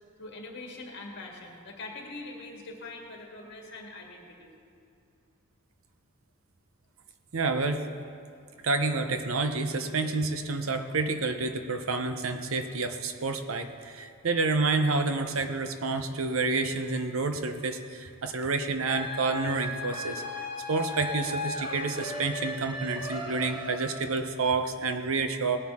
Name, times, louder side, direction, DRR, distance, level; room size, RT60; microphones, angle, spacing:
voice 1, 0.2-4.5, left 2 dB, 55° left, 0 dB, 1.9 m, -43 dB
voice 2, 7.3-7.9 8.6-20.2 20.7-25.6, right 3 dB, 70° right, 8 dB, 0.8 m, -29 dB
sound 1, 18.9-24.4, left 1 dB, 25° right, 1.7 m, -36 dB
18.0 x 10.0 x 3.6 m, 2.4 s
head